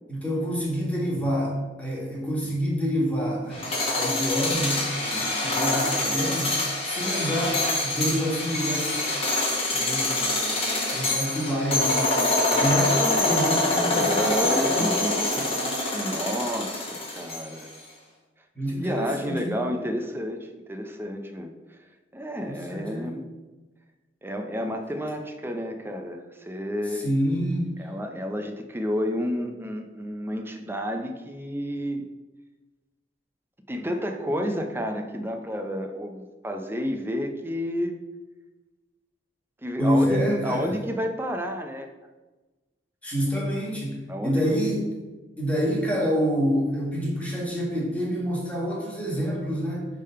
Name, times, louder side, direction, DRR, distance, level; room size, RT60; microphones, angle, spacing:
voice 1, 0.1-3.7 3.9-9.1 9.7-10.3 10.9-15.5 18.5-19.6 22.4-23.2 26.8-27.7 39.8-40.7 43.0-44.8 45.4-49.9, equal, 10° left, -4 dB, 1.5 m, -27 dB
sound 1, 3.5-17.7, left 2 dB, 35° left, 1.2 m, -25 dB
voice 2, 13.8-15.2 15.9-17.7 18.7-21.5 22.1-23.3 24.2-27.1 27.8-32.0 33.7-38.0 39.6-41.9 44.1-44.6, equal, 10° right, 5 dB, 0.5 m, -30 dB
5.0 x 3.6 x 5.5 m, 1.2 s
head